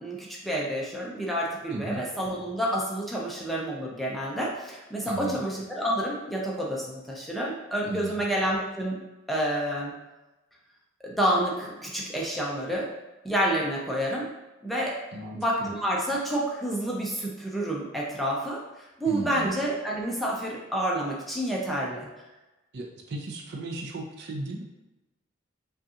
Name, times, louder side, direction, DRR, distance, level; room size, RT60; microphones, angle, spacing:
voice 1, 0.0-9.0 9.3-9.9 11.0-12.9 13.2-14.3 14.6-14.9 15.3-18.6 19.0-22.1, right 1 dB, ahead, -4 dB, 0.5 m, -29 dB
voice 2, 1.7-2.0 5.0-5.4 7.9-8.2 15.1-15.7 19.1-19.5 22.7-24.6, right 2 dB, 55° right, 2 dB, 0.5 m, -35 dB
5.1 x 2.4 x 2.8 m, 1.1 s
head